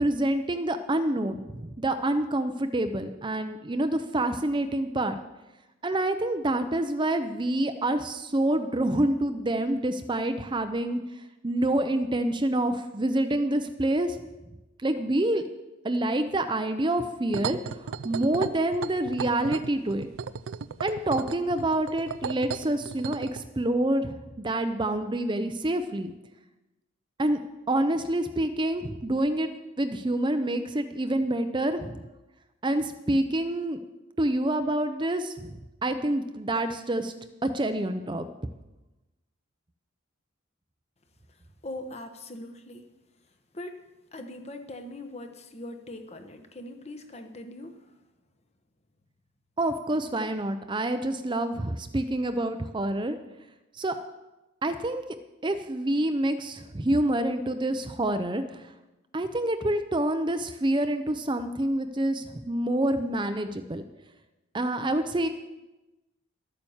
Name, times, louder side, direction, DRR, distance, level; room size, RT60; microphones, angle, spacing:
voice 1, 0.0-5.2 5.8-11.0 11.4-14.2 14.8-15.4 15.8-20.1 20.8-26.1 27.2-27.4 27.7-29.5 29.8-32.1 32.6-33.8 34.2-35.6 35.8-37.1 37.4-38.3 49.6-53.2 53.7-53.9 54.6-55.0 55.4-58.6 59.1-63.8 64.5-65.3, right 1 dB, 25° right, 8 dB, 0.6 m, -27 dB
sound 1, 17.3-23.4, right 6 dB, 80° right, 0.5 m, -35 dB
voice 2, 41.6-42.9 43.5-43.8 44.1-47.9, left 1 dB, 30° left, 6 dB, 1.1 m, -41 dB
12.0 x 9.0 x 7.1 m, 1.0 s
head